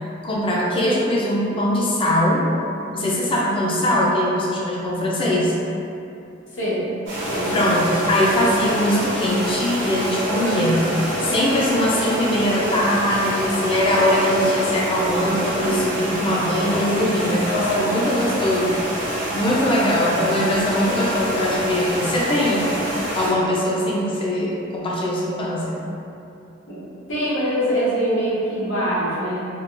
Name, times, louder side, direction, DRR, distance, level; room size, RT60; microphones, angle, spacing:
voice 1, 0.2-2.4 2.9-5.5 7.5-10.9 11.2-18.7 19.3-22.7 23.2-25.8, left 1 dB, 25° left, -4 dB, 0.5 m, -21 dB
voice 2, 6.5-6.9 7.3-7.7 26.7-26.8 27.1-29.4, equal, 75° left, -9 dB, 1.1 m, -23 dB
sound 1, 7.1-23.3, equal, 70° right, 1.1 m, -26 dB
3.7 x 2.4 x 2.4 m, 2.7 s
head